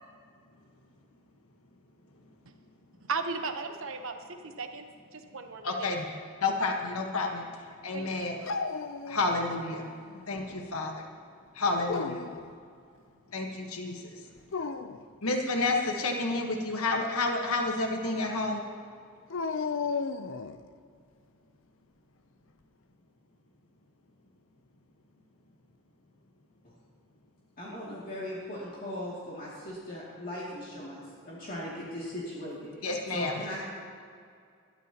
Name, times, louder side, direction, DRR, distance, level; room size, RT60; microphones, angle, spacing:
voice 1, 3.1-4.1 4.4-4.9 5.1-5.9 7.9-8.5, right 4 dB, 70° right, 6 dB, 1.0 m, -36 dB
voice 2, 5.6-6.1 6.4-7.4 7.8-8.4 9.1-9.9 10.3-11.0 11.5-12.2 13.3-14.0 15.2-18.6 32.8-33.4, left 3 dB, 85° left, 2 dB, 1.4 m, -30 dB
Dog, 8.4-9.6 10.0-10.7 11.7-12.4 14.4-15.0 19.3-20.6, left 4 dB, 65° left, 0.6 m, -34 dB
voice 3, 27.6-33.6, left 1 dB, 40° left, -7 dB, 2.6 m, -39 dB
20.5 x 13.0 x 3.0 m, 2.3 s
head